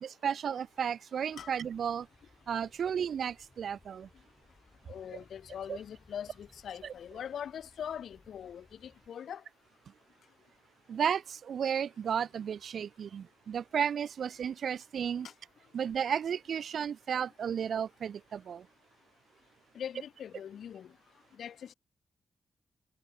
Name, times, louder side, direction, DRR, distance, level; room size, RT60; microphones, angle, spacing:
voice 1, 0.0-2.1 2.5-4.1 5.1-5.2 5.7-5.8 6.8-6.9 10.9-15.3 15.7-18.7, right 8 dB, 65° right, 0.8 m, -33 dB
sound 1, 1.3-9.1, left 3 dB, 25° left, 6.3 m, -63 dB
voice 2, 4.9-9.4 19.7-20.9 21.4-21.7, left 9 dB, 80° left, 1.6 m, -42 dB
wide cardioid pair, 140°, 0 cm